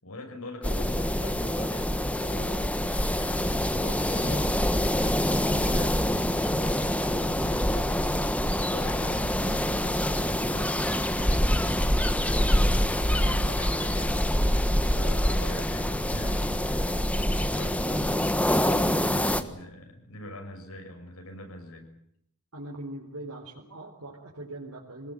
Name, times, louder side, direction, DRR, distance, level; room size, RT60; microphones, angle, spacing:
voice 1, 0.0-2.7 3.1-6.0 6.5-7.9 8.5-10.9 11.4-14.2 14.9-21.9, left 1 dB, 75° left, 4 dB, 7.2 m, -43 dB
sound 1, 0.6-19.4, equal, 5° left, 1.5 m, -25 dB
voice 2, 22.5-25.1, right 1 dB, 80° right, -2 dB, 4.3 m, -41 dB
25.0 x 20.0 x 9.1 m, 0.72 s
head